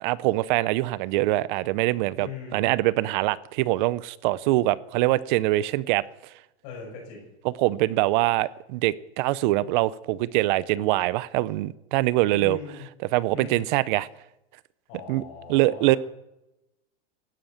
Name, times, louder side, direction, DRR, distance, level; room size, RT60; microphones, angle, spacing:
voice 1, 0.0-6.0 7.4-12.6 13.1-14.1 15.1-15.2 15.5-16.0, right 17 dB, 45° right, 0.7 m, -24 dB
voice 2, 2.2-2.8 6.6-7.3 12.3-12.9 13.3-13.7 14.9-16.0, left 5 dB, 45° left, 6.4 m, -40 dB
16.5 x 12.0 x 6.6 m
supercardioid pair, 140°, 33 cm